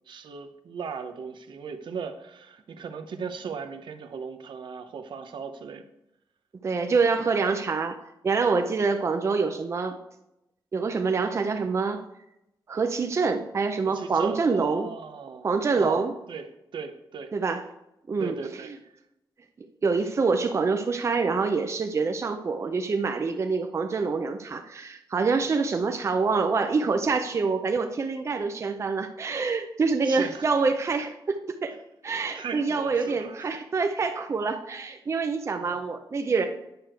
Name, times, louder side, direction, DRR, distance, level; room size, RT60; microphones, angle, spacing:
voice 1, 0.1-5.8 13.8-15.5 15.8-17.3 18.2-18.9 30.0-30.5 32.3-33.5 35.6-35.9, right 6 dB, 75° right, 8 dB, 0.9 m, -37 dB
voice 2, 6.6-7.9 8.2-10.0 10.7-12.0 12.7-14.9 15.4-16.1 17.3-17.6 18.1-18.4 19.8-31.8 32.0-36.5, right 4 dB, 35° right, 6 dB, 0.6 m, -26 dB
9.6 x 6.5 x 4.6 m, 0.87 s
wide cardioid pair, 155°, 8 cm